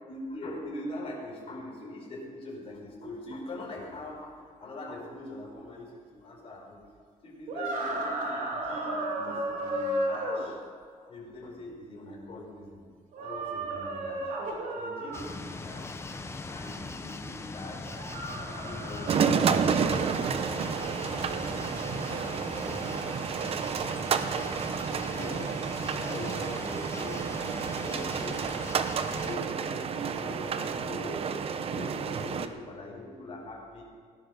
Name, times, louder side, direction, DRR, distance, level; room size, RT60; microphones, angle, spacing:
voice 1, 0.1-6.8 7.2-10.6 11.0-12.8 13.2-14.3 14.7-16.0 16.5-18.0 18.5-21.3 22.1-22.8 24.5-24.7 25.0-25.5 25.9-28.5 29.1-33.8, left 1 dB, 45° left, -1 dB, 4.8 m, -42 dB
sound 1, 7.5-10.4 13.1-15.2 17.8-19.9, right 1 dB, 80° right, 3.3 m, -33 dB
sound 2, 15.1-29.4, left 3 dB, 20° left, 0.9 m, -40 dB
sound 3, 19.1-32.5, right 6 dB, 45° right, 0.8 m, -30 dB
17.5 x 10.5 x 6.5 m, 2.1 s
cardioid pair, 165°, 14 cm